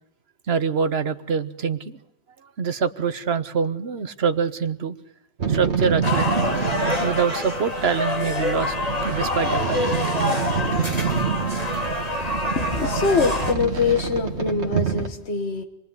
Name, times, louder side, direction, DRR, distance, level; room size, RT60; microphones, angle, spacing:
voice 1, 0.5-2.0 2.6-5.0 5.5-6.5 7.0-8.7 9.0-10.6 11.1-11.2, right 6 dB, 70° right, 11 dB, 1.4 m, -25 dB
sound 1, 5.4-15.1, right 6 dB, 90° right, 1.8 m, -27 dB
sound 2, 6.0-13.5, left 2 dB, 35° left, 3.7 m, -26 dB
voice 2, 12.6-15.6, left 4 dB, 80° left, 5 dB, 1.8 m, -23 dB
27.0 x 20.0 x 9.6 m, 0.79 s
omnidirectional pair, 1.1 m